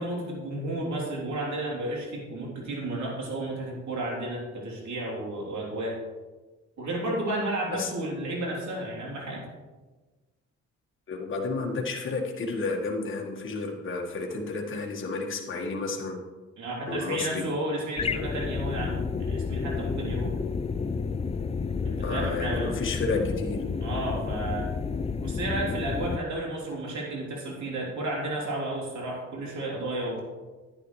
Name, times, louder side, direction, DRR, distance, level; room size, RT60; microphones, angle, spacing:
voice 1, 0.0-6.0 6.8-9.5 16.6-20.3 21.8-22.8 23.8-24.7 25.2-30.2, right 1 dB, 65° right, -2 dB, 3.4 m, -32 dB
voice 2, 11.1-16.2 16.9-17.5 22.0-23.6, left 3 dB, 40° left, -1 dB, 1.6 m, -31 dB
sound 1, 18.0-26.2, left 5 dB, 20° left, 0.4 m, -30 dB
10.5 x 9.8 x 3.3 m, 1.3 s
cardioid pair, 90°, 30 cm